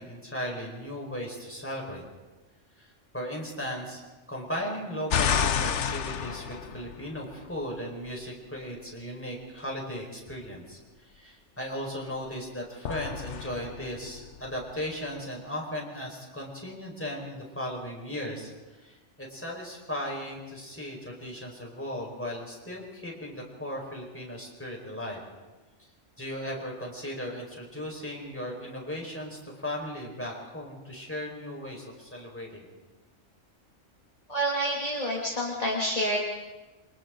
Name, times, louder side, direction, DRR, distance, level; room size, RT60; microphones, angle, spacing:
voice 1, 0.0-2.1 2.8-4.0 4.3-18.5 18.8-25.2 26.2-32.6, equal, 10° left, -2 dB, 4.9 m, -37 dB
sound 1, 5.1-7.5 12.8-14.9, left 7 dB, 70° left, 1.1 m, -30 dB
voice 2, 34.3-36.2, equal, 30° left, -4 dB, 2.5 m, -28 dB
28.5 x 25.0 x 3.9 m, 1.2 s
omnidirectional pair, 1.3 m